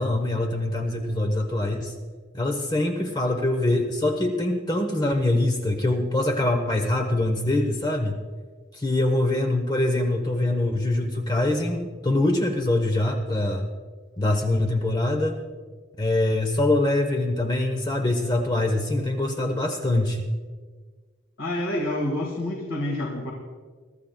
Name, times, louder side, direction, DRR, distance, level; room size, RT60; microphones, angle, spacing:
voice 1, 0.0-1.9 2.3-8.2 8.7-13.7 14.2-15.4 16.0-20.3, left 2 dB, 20° left, 4 dB, 0.9 m, -24 dB
voice 2, 21.4-23.3, left 1 dB, 85° left, 0 dB, 1.9 m, -28 dB
23.5 x 13.5 x 2.3 m, 1.5 s
head